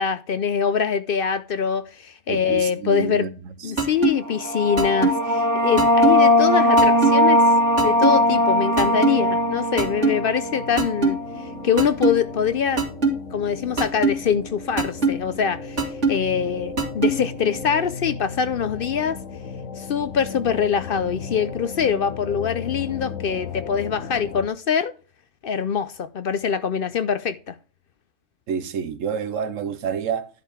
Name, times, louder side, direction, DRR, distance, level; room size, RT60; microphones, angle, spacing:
voice 1, 0.0-3.3 3.6-7.4 7.8-12.8 13.3-19.2 19.8-24.9 25.4-27.6, left 7 dB, 55° left, 0.7 m, -24 dB
voice 2, 2.3-3.3 3.6-3.8 28.5-30.3, right 7 dB, 85° right, 1.3 m, -28 dB
sound 1, 3.8-4.1 4.8-5.1 5.8-6.1 6.8-7.1 7.8-8.1 8.8-9.1 9.8-10.1 10.8-11.1 11.8-12.1 12.8-13.1 13.8-14.1 14.8-15.1 15.8-16.1 16.8-17.1, right 4 dB, 65° right, 2.5 m, -19 dB
sound 2, 4.3-11.5, left 1 dB, 20° right, 0.7 m, -19 dB
sound 3, 7.2-24.5, left 6 dB, 75° left, 1.3 m, -37 dB
11.0 x 4.7 x 4.9 m
omnidirectional pair, 1.3 m